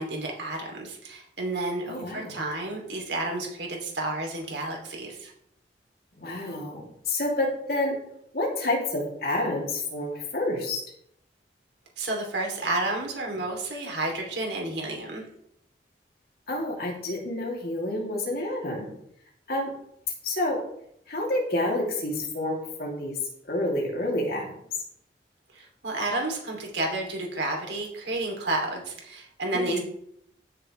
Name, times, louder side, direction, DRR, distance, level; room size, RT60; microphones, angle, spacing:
voice 1, 0.0-5.3 12.0-15.2 25.5-29.8, right 2 dB, 85° right, 0 dB, 3.1 m, -31 dB
voice 2, 1.9-2.4 6.2-8.0 8.3-10.8 16.5-18.9 19.5-19.7 20.2-20.6 21.1-23.2 23.5-24.5 29.5-29.8, left 1 dB, 60° left, -2 dB, 3.0 m, -29 dB
15.0 x 7.0 x 3.4 m, 0.73 s
head